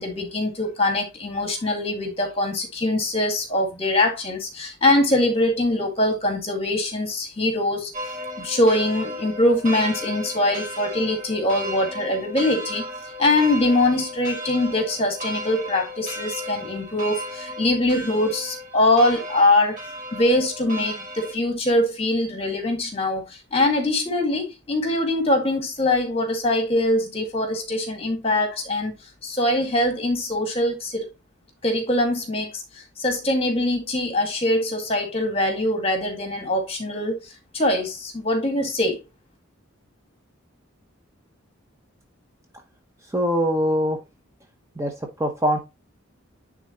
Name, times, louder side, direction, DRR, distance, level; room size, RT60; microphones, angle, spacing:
voice 1, 0.0-7.9 8.4-12.8 13.2-19.8 20.1-28.9 29.2-31.1 31.6-32.6 33.0-37.2 37.5-39.0, left 1 dB, 30° left, 1.9 m, -23 dB
sound 1, 7.9-21.3, equal, 35° right, 2.6 m, -35 dB
voice 2, 43.1-44.0 44.8-44.9 45.2-45.6, equal, 15° right, 0.9 m, -22 dB
9.9 x 3.7 x 2.9 m
head